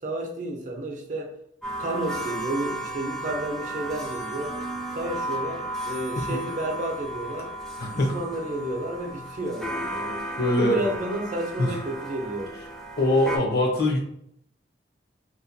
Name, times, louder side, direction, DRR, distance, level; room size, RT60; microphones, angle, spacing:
voice 1, 0.0-1.3 1.8-4.6 4.9-7.5 7.9-12.5, right 1 dB, 45° right, 2 dB, 0.5 m, -31 dB
sound 1, 1.6-13.4, right 1 dB, 5° left, 0.5 m, -34 dB
voice 2, 7.8-8.2 10.3-10.8 11.6-11.7 13.0-14.0, left 1 dB, 60° left, 0 dB, 0.8 m, -22 dB
2.9 x 2.2 x 2.6 m, 0.70 s
head